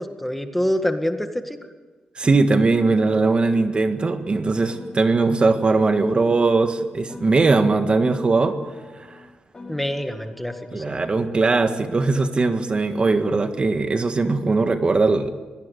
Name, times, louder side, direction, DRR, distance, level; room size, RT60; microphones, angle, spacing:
voice 1, 0.0-1.6 9.7-11.0, equal, 5° left, 7 dB, 1.8 m, -26 dB
voice 2, 2.1-8.6 9.0-9.2 10.7-15.4, right 3 dB, 40° right, 8 dB, 1.7 m, -20 dB
Piano, 2.2-6.7 7.1-11.7, left 3 dB, 25° left, 4.9 m, -45 dB
23.0 x 18.0 x 8.3 m, 1.3 s
cardioid pair, 90°, 3 cm